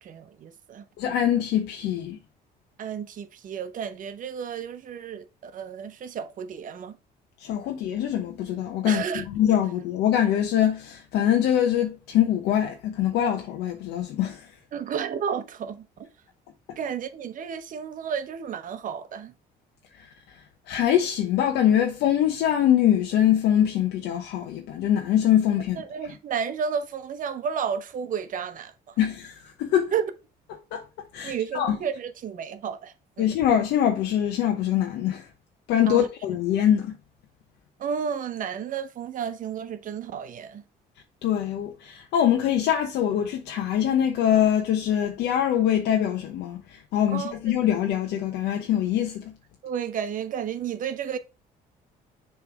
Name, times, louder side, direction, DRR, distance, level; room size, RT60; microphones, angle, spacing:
voice 1, 0.0-0.8 2.8-7.0 8.8-9.2 14.7-15.8 16.8-19.3 25.8-28.7 29.9-30.1 31.2-33.3 35.9-36.1 37.8-40.6 47.1-47.5 49.6-51.2, right 7 dB, 50° right, 0.9 m, -32 dB
voice 2, 1.0-2.2 7.4-14.5 20.7-25.8 29.0-29.9 30.7-30.8 31.1-31.8 33.2-35.2 35.7-37.0 41.2-49.3, left 10 dB, 80° left, 0.9 m, -23 dB
7.0 x 3.4 x 4.7 m
cardioid pair, 110°, 17 cm